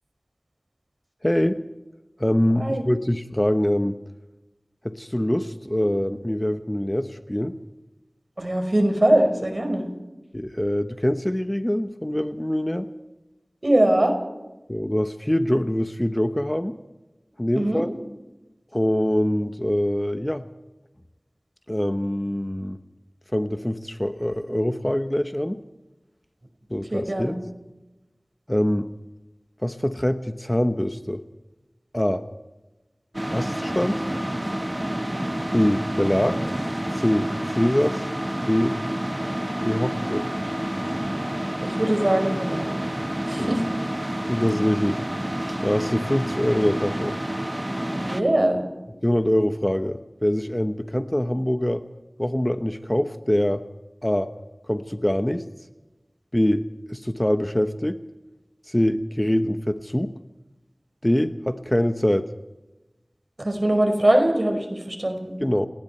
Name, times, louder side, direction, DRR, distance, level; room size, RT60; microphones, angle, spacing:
voice 1, 1.2-1.6 2.2-4.0 4.8-7.5 10.3-12.9 14.7-16.7 17.4-17.9 18.7-20.4 21.7-22.8 23.3-25.6 26.7-27.3 28.5-28.9 29.6-31.2 31.9-32.2 33.3-34.0 35.5-36.4 36.9-38.1 38.4-38.7 39.6-40.2 43.4-43.6 44.3-47.2 49.0-51.8 52.2-53.6 54.0-54.3 54.7-55.5 56.3-58.0 58.7-60.1 61.0-62.3 65.4-65.7, left 1 dB, 15° left, 9 dB, 1.1 m, -24 dB
voice 2, 8.4-9.9 13.6-14.1 17.5-17.8 26.9-27.4 41.6-42.7 43.3-43.6 47.9-48.6 63.4-65.3, right 1 dB, 45° right, 5 dB, 5.2 m, -22 dB
sound 1, 33.1-48.2, right 1 dB, 20° right, 1.5 m, -29 dB
29.5 x 19.5 x 4.5 m, 1.0 s
wide cardioid pair, 45°, 0 cm